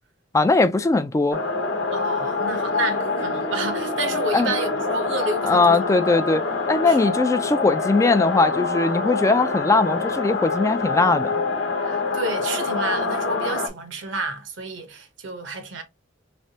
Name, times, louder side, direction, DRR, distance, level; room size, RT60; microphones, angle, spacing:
voice 1, 0.3-1.4 4.3-4.5 5.4-6.4 6.7-11.4, left 3 dB, 15° left, 0.3 m, -20 dB
sound 1, 1.3-13.7, left 3 dB, 75° left, 0.9 m, -25 dB
voice 2, 1.9-5.9 6.7-7.0 11.8-15.8, right 2 dB, 75° right, 0.9 m, -30 dB
3.5 x 3.2 x 2.7 m
head